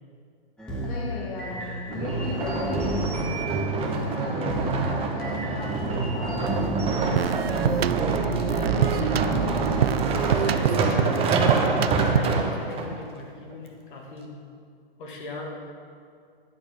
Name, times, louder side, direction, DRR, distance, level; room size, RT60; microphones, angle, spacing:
sound 1, 0.6-10.3, right 1 dB, 5° left, 1.9 m, -32 dB
voice 1, 0.8-3.1 3.8-7.4, left 2 dB, 25° left, -2 dB, 1.5 m, -37 dB
sound 2, 1.9-12.9 13.5-13.6, right 4 dB, 20° right, 1.2 m, -27 dB
sound 3, 7.2-12.5, right 9 dB, 75° right, 0.6 m, -26 dB
voice 2, 8.0-9.8 10.3-14.4 15.0-15.5, left 2 dB, 55° left, -1 dB, 2.6 m, -38 dB
13.0 x 11.0 x 4.0 m, 2.3 s
hypercardioid pair, 125°, 31 cm